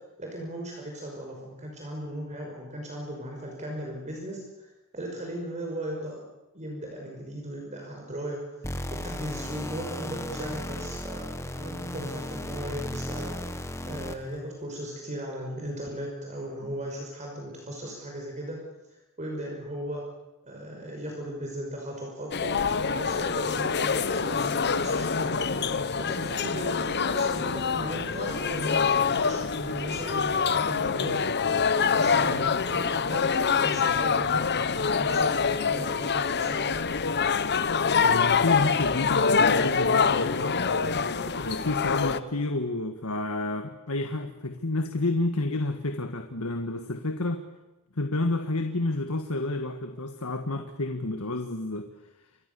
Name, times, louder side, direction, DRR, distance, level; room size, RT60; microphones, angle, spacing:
voice 1, 0.2-6.2 6.5-8.6 8.9-18.6 18.9-20.1 20.4-22.6 22.9-25.5 26.0-31.2 31.9-34.4 35.0-36.8, right 1 dB, 35° right, 0 dB, 5.7 m, -37 dB
sound 1, 8.6-14.4, left 1 dB, 15° left, 1.5 m, -35 dB
sound 2, 22.3-42.2, left 5 dB, 50° left, 1.1 m, -25 dB
voice 2, 38.0-40.7 41.4-47.4 47.9-51.9, left 2 dB, 70° left, 7 dB, 1.7 m, -30 dB
29.0 x 24.0 x 7.0 m, 1.0 s
head